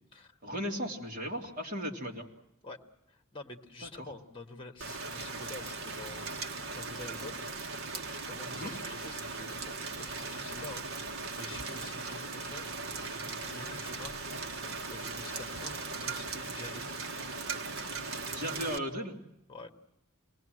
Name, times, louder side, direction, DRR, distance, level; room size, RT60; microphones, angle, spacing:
voice 1, 0.4-2.2 3.8-4.1 8.5-8.7 18.2-19.2, equal, 40° right, 0 dB, 3.0 m, -36 dB
voice 2, 3.1-7.4 8.3-12.7 13.0-14.6 14.9-16.8 19.5-19.7, left 2 dB, 25° left, 5 dB, 1.7 m, -48 dB
Rain, 4.8-18.8, right 3 dB, 65° right, 1.6 m, -39 dB
26.5 x 19.5 x 7.8 m, 0.83 s
head